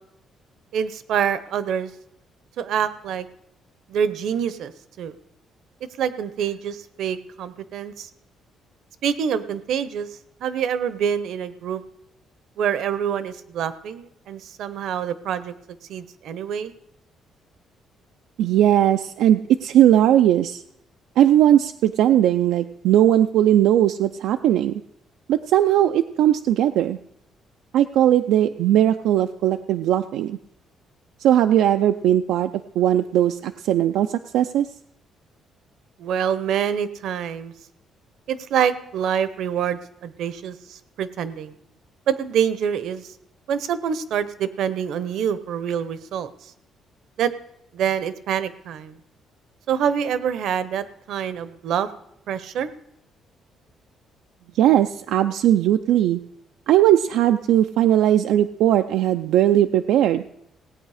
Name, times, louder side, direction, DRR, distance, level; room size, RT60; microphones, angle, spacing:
voice 1, 0.7-1.9 2.6-3.3 3.9-4.7 5.0-5.1 6.0-8.1 9.0-10.1 10.4-11.8 12.6-15.5 15.9-16.7 36.0-37.5 38.3-41.5 42.1-43.0 43.5-46.3 47.2-47.3 47.7-49.0 49.7-51.9 52.3-52.7, right 8 dB, 65° right, 14 dB, 0.8 m, -26 dB
voice 2, 18.4-20.6 21.2-24.8 25.3-27.0 27.7-30.4 31.2-32.5 32.8-34.1 34.3-34.7 54.6-56.2 56.7-60.2, right 11 dB, 85° right, 7 dB, 0.4 m, -18 dB
18.0 x 8.9 x 4.9 m, 0.79 s
cardioid pair, 155°, 0 cm